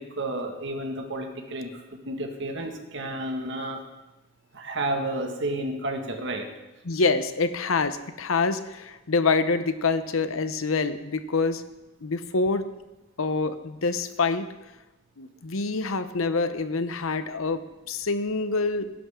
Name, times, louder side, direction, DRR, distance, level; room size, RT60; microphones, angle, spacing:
voice 1, 0.0-1.7 2.1-3.8 4.5-6.5, right 1 dB, 65° right, 3 dB, 1.8 m, -31 dB
voice 2, 6.8-11.6 12.0-12.7 13.2-14.5 15.2-18.9, left 4 dB, 80° left, 11 dB, 0.8 m, -26 dB
18.5 x 11.0 x 3.7 m, 1.0 s
head